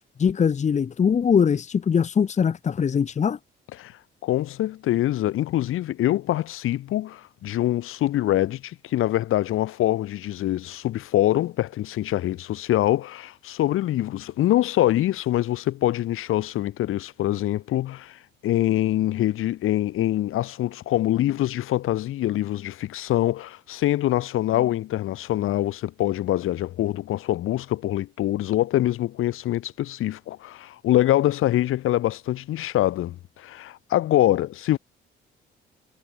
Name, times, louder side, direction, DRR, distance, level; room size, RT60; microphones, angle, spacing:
voice 1, 0.2-3.4, left 7 dB, 35° left, 1.8 m, -21 dB
voice 2, 4.2-34.8, left 14 dB, 85° left, 6.0 m, -24 dB
cardioid pair, 155°, 21 cm